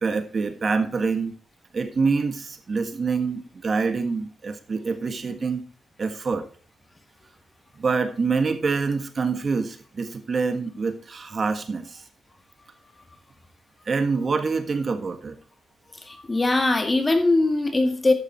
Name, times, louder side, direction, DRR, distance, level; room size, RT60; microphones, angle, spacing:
voice 1, 0.0-1.3 1.7-5.6 6.0-6.5 7.8-12.0 13.9-15.3, right 4 dB, 45° right, 8 dB, 1.6 m, -26 dB
voice 2, 16.0-18.1, left 2 dB, 25° left, 6 dB, 1.9 m, -21 dB
12.0 x 6.9 x 4.5 m, 0.40 s
cardioid pair, 85°, 0 cm